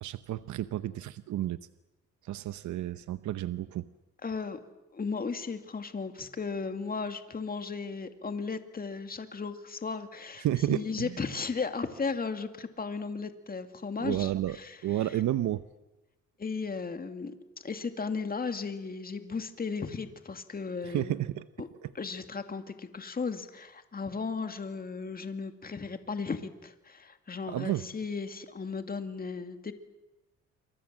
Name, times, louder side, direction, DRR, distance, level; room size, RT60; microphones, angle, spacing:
voice 1, 0.0-1.6 2.2-3.9 10.4-11.2 14.0-14.6 14.8-15.6 20.8-21.5 21.8-21.9 27.5-27.9, right 13 dB, 70° right, 13 dB, 0.9 m, -31 dB
voice 2, 4.2-4.6 4.9-14.8 16.4-17.3 17.6-21.2 21.6-21.7 21.9-29.7, left 4 dB, 30° left, 8 dB, 2.4 m, -35 dB
28.5 x 24.0 x 7.6 m, 1.0 s
cardioid pair, 90°, 30 cm